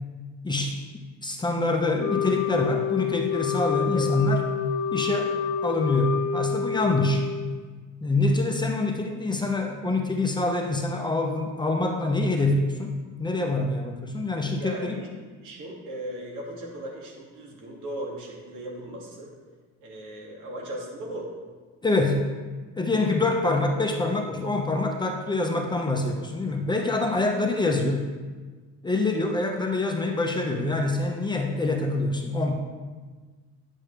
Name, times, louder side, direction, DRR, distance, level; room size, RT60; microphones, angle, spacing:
voice 1, 0.4-0.8 1.2-4.4 4.9-5.3 5.6-7.2 8.0-14.9 21.8-22.3 22.8-28.1 28.8-32.5, left 2 dB, 15° left, 2 dB, 0.8 m, -25 dB
Wind instrument woodwind instrument, 2.0-7.6, left 7 dB, 60° left, 0.6 m, -28 dB
voice 2, 14.6-15.1 15.4-19.3 19.8-21.3, right 1 dB, 75° right, -1 dB, 2.4 m, -37 dB
10.0 x 7.3 x 3.4 m, 1.4 s
cardioid pair, 140°, 31 cm